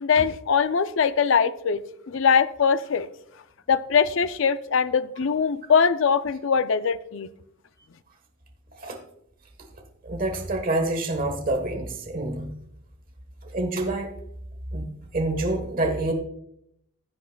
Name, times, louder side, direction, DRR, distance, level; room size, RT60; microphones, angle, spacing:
voice 1, 0.0-1.8 2.1-3.1 3.7-7.3, left 6 dB, 60° left, 13 dB, 0.4 m, -22 dB
voice 2, 10.0-12.5 13.5-14.1 14.7-16.1, right 2 dB, 40° right, 3 dB, 1.3 m, -27 dB
15.5 x 8.3 x 2.3 m, 0.75 s
head